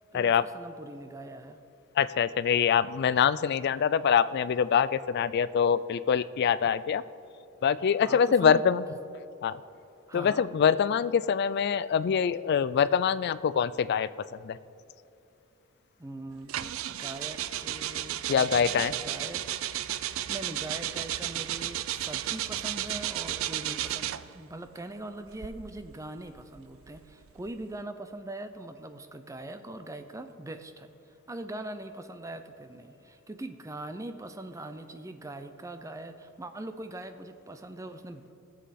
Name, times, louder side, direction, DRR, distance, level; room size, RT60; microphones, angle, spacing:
voice 1, 0.1-1.6 8.0-8.6 10.1-10.5 16.0-19.4 20.3-30.9 31.3-38.3, right 1 dB, 15° right, 8 dB, 0.5 m, -42 dB
voice 2, 2.0-7.0 7.6-8.8 9.4-9.6 10.1-14.1 14.4-14.6 18.3-18.9, left 7 dB, 50° left, 16 dB, 0.3 m, -24 dB
sound 1, 16.5-24.4 25.2-27.7, right 12 dB, 70° right, 0.4 m, -34 dB
18.0 x 7.5 x 4.2 m, 2.6 s
head